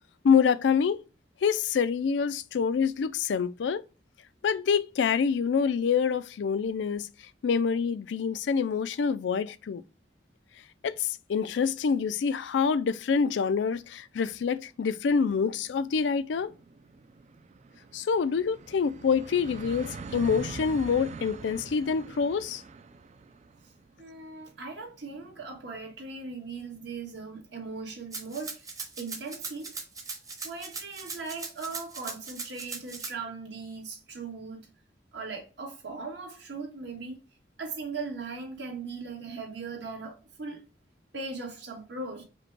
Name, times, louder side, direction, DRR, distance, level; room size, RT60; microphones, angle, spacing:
voice 1, 0.2-1.0 1.4-3.8 4.4-7.1 7.4-9.8 10.8-16.5 17.9-22.6, left 6 dB, 80° left, 0.4 m, -26 dB
sound 1, 15.4-26.7, right 4 dB, 40° right, 0.3 m, -44 dB
voice 2, 24.0-29.7 30.4-34.6 35.1-37.2 37.6-40.6 41.1-42.2, right 4 dB, 75° right, 1.6 m, -39 dB
Rattle (instrument), 28.1-33.1, right 4 dB, 20° right, 0.8 m, -39 dB
5.0 x 2.2 x 4.5 m
head